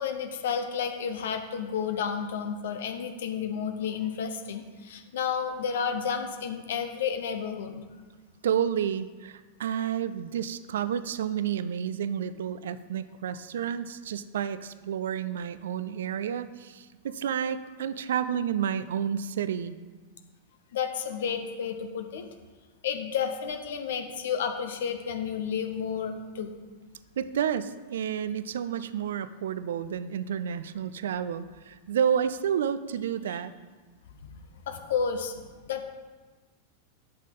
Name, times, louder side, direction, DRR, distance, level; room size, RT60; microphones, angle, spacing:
voice 1, 0.0-7.8 20.7-22.3 22.8-26.5 34.3-34.4 34.7-35.4 35.7-35.9, left 7 dB, 60° left, 7 dB, 0.8 m, -31 dB
voice 2, 8.4-19.8 27.2-33.5, right 8 dB, 60° right, 13 dB, 0.4 m, -30 dB
11.5 x 6.4 x 3.9 m, 1.3 s
figure-of-eight pair, 90°, 0 cm